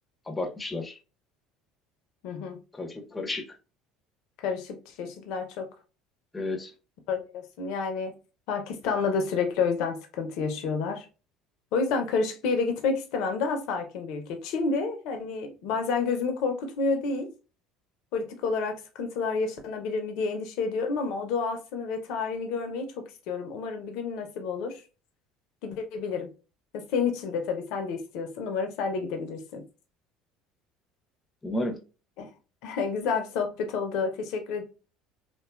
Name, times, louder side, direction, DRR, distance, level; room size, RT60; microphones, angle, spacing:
voice 1, 0.3-1.0 2.7-3.4 6.3-6.7 31.4-31.8, left 2 dB, 15° left, 0.6 m, -32 dB
voice 2, 2.2-2.6 4.4-5.7 7.1-8.1 8.5-11.0 11.7-17.3 18.1-22.9 23.3-24.8 25.6-26.3 26.7-29.6 32.2-32.3 32.6-34.6, left 4 dB, 70° left, 0.6 m, -29 dB
2.6 x 2.3 x 2.2 m
hypercardioid pair, 75°, 0 cm